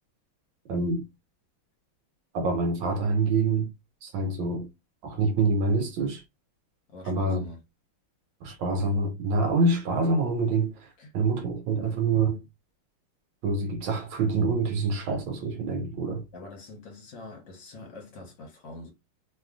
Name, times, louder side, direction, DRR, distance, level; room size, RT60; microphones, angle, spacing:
voice 1, 0.7-1.0 2.3-3.7 4.0-4.7 5.0-6.2 7.1-7.4 8.4-10.9 11.1-12.4 13.4-16.2, right 3 dB, 75° right, 1.2 m, -26 dB
voice 2, 6.9-7.6 11.0-11.1 16.3-18.9, left 2 dB, 65° left, 1.7 m, -44 dB
3.5 x 2.3 x 2.4 m
omnidirectional pair, 2.4 m